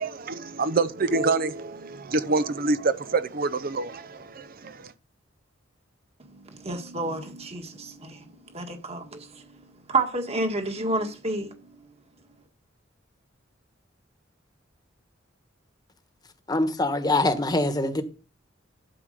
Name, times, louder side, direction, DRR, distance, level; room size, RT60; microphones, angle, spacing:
voice 1, 0.0-4.9, right 3 dB, 50° right, 0.6 m, -26 dB
voice 2, 6.2-9.6 9.9-11.7, right 2 dB, 30° right, 1.8 m, -30 dB
voice 3, 16.5-18.0, left 2 dB, 20° left, 1.3 m, -24 dB
12.5 x 4.8 x 6.6 m
head